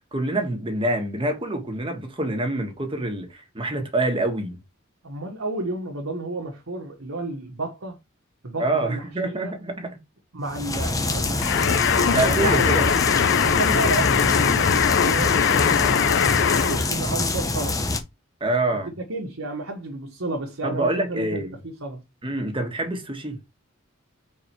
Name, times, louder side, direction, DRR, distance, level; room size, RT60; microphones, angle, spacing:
voice 1, 0.1-4.6 8.6-10.0 11.8-12.9 18.4-18.9 20.6-21.6 22.2-23.4, right 2 dB, 25° right, 1.6 m, -26 dB
voice 2, 5.0-8.0 8.4-9.5 10.3-11.7 12.2-13.0 13.4-17.8 18.8-22.0, right 2 dB, 80° right, 1.4 m, -31 dB
sound 1, 10.5-18.0, left 2 dB, 15° left, 0.9 m, -26 dB
sound 2, 11.4-16.9, left 7 dB, 60° left, 0.5 m, -21 dB
4.8 x 4.5 x 4.5 m
head